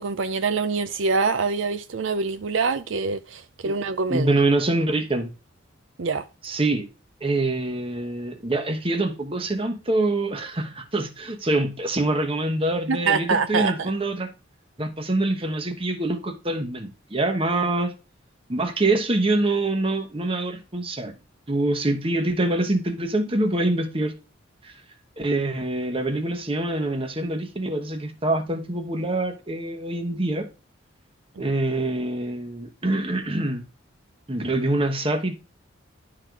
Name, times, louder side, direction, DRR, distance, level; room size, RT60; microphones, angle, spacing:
voice 1, 0.0-4.3 6.0-6.2 12.9-13.9 31.4-31.5, right 4 dB, 70° right, 0.5 m, -25 dB
voice 2, 4.1-5.3 6.4-6.8 7.2-14.3 14.8-17.9 18.5-21.1 21.5-24.1 24.6-24.7 25.2-30.5 31.4-33.6 34.3-35.3, right 2 dB, 25° right, 1.1 m, -25 dB
11.0 x 3.9 x 4.6 m
head